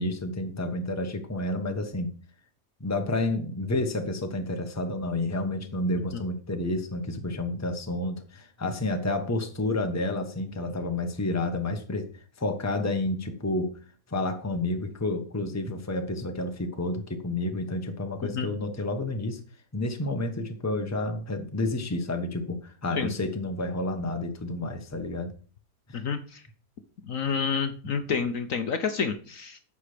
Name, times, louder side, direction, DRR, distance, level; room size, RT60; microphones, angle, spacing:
voice 1, 0.0-2.1 2.8-13.8 14.1-19.4 19.7-25.3 25.9-26.0, left 2 dB, 10° left, 5 dB, 1.0 m, -30 dB
voice 2, 25.9-26.4 27.0-29.6, left 6 dB, 60° left, 8 dB, 1.2 m, -29 dB
10.0 x 7.0 x 5.1 m, 0.41 s
omnidirectional pair, 1.8 m